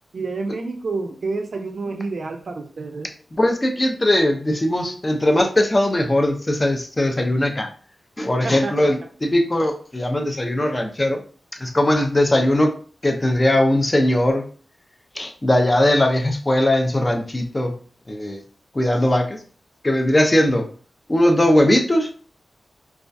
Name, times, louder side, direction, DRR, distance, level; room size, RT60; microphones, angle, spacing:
voice 1, 0.1-3.1 8.4-8.9, right 3 dB, 65° right, 4 dB, 0.3 m, -29 dB
voice 2, 3.4-7.7 8.2-11.2 11.6-12.7 13.0-14.5 15.2-17.8 18.1-18.4 18.7-19.4 19.8-20.7 21.1-22.1, left 1 dB, 30° left, 4 dB, 0.4 m, -19 dB
2.2 x 2.2 x 2.5 m, 0.42 s
cardioid pair, 60°, 0 cm